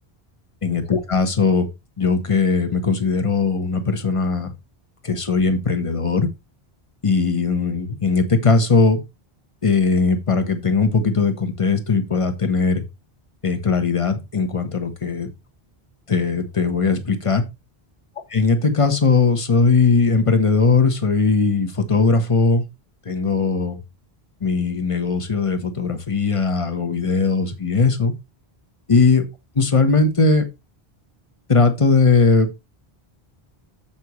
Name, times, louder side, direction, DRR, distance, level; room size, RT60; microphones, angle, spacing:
voice 1, 0.6-1.7 2.0-4.5 5.0-6.3 7.0-9.0 9.6-12.8 13.4-15.3 16.1-17.4 18.3-22.6 23.0-23.8 24.4-28.1 28.9-29.2 29.5-30.4 31.5-32.6, left 4 dB, 30° left, 1.3 m, -19 dB
8.8 x 7.2 x 3.1 m
omnidirectional pair, 1.0 m